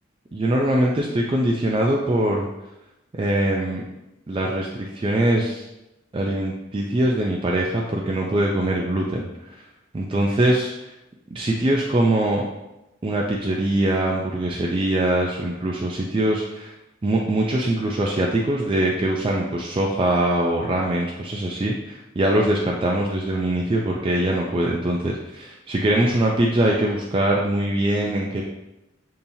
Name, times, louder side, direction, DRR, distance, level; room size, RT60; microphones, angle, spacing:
voice 1, 0.3-2.5 3.1-3.8 4.3-5.7 6.1-9.3 9.9-10.7 11.3-12.4 13.0-16.7 17.0-28.4, right 1 dB, 25° right, -2 dB, 0.3 m, -22 dB
6.9 x 2.8 x 2.7 m, 0.95 s
head